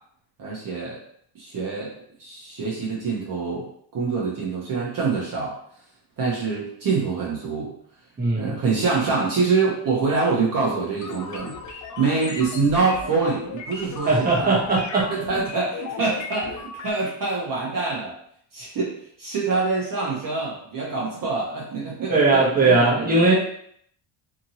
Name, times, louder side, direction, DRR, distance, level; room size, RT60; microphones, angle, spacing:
voice 1, 0.4-1.0 1.3-1.9 2.2-3.7 3.9-5.5 6.2-7.7 8.3-11.5 12.0-14.6 15.1-18.1 18.5-23.3, right 4 dB, 40° right, -5 dB, 0.9 m, -25 dB
voice 2, 8.2-8.5 14.1-15.1 22.1-23.3, right 3 dB, 20° right, -5 dB, 1.0 m, -19 dB
sound 1, 11.0-16.9, left 5 dB, 40° left, 0.4 m, -36 dB
2.9 x 2.5 x 2.7 m, 0.64 s
cardioid pair, 115°, 49 cm